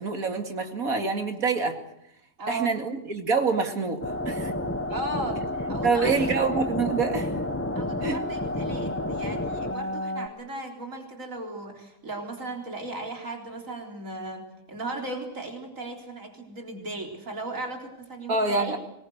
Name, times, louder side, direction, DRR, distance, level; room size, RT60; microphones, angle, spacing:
voice 1, 0.0-1.8 2.5-4.5 5.8-7.3 8.0-8.2 18.3-18.8, right 4 dB, 85° right, 5 dB, 2.9 m, -26 dB
voice 2, 2.4-2.7 4.9-5.4 5.7-6.4 7.2-7.3 7.8-18.7, right 2 dB, 70° right, 2 dB, 4.2 m, -36 dB
sound 1, 4.0-10.3, left 1 dB, 10° left, 1.3 m, -30 dB
24.5 x 21.0 x 8.0 m, 0.80 s
omnidirectional pair, 1.5 m